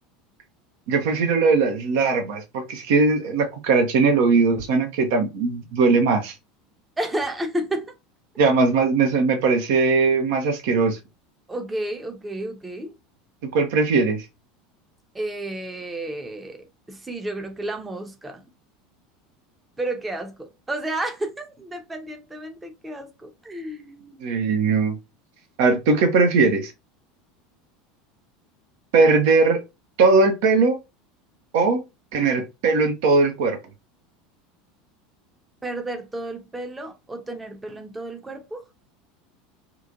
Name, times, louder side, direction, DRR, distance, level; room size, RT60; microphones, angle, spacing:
voice 1, 0.9-6.3 8.4-11.0 13.5-14.2 24.2-25.0 25.6-26.7 28.9-29.6 30.0-30.8 31.5-31.8 32.1-33.6, right 4 dB, 60° right, 0.6 m, -19 dB
voice 2, 7.0-7.9 11.5-12.9 15.1-18.4 19.8-24.2 35.6-38.6, right 1 dB, 15° right, 0.7 m, -31 dB
2.9 x 2.4 x 2.5 m
figure-of-eight pair, 75°, 0 cm